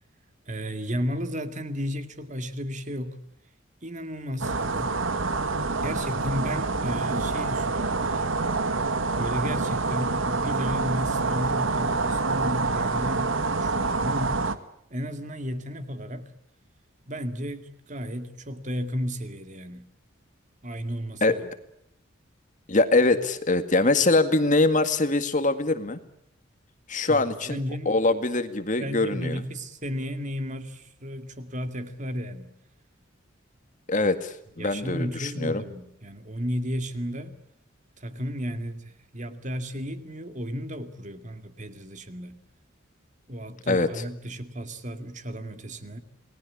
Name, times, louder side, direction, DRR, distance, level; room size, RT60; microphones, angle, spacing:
voice 1, 0.5-3.2 3.8-5.0 5.8-8.4 9.2-14.4 14.9-16.3 17.1-19.9 20.6-21.5 27.1-28.0 28.8-32.5 34.6-37.3 38.0-42.4 43.3-46.0, equal, 40° right, 2.2 m, -33 dB
sound 1, 4.4-14.6, right 3 dB, 75° right, 1.7 m, -27 dB
voice 2, 22.7-26.0 26.9-27.6 27.9-29.4 33.9-35.6 43.7-43.9, left 2 dB, 40° left, 2.0 m, -23 dB
28.5 x 20.0 x 8.6 m
head